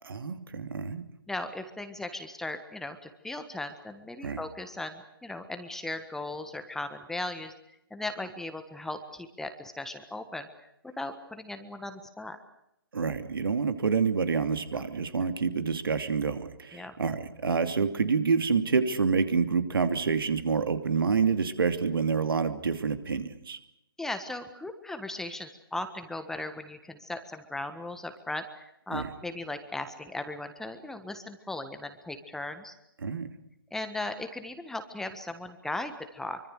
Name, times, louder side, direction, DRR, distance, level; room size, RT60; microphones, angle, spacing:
voice 1, 0.0-1.0 4.2-4.4 12.9-23.6 28.9-29.1 33.0-33.3, right 5 dB, 65° right, 9 dB, 2.8 m, -27 dB
voice 2, 1.3-7.5 7.9-10.5 11.0-12.4 14.7-14.8 16.7-16.9 24.0-32.7 33.7-36.4, left 2 dB, 5° left, 8 dB, 1.5 m, -37 dB
25.5 x 25.0 x 6.6 m, 0.83 s
figure-of-eight pair, 140°, 13 cm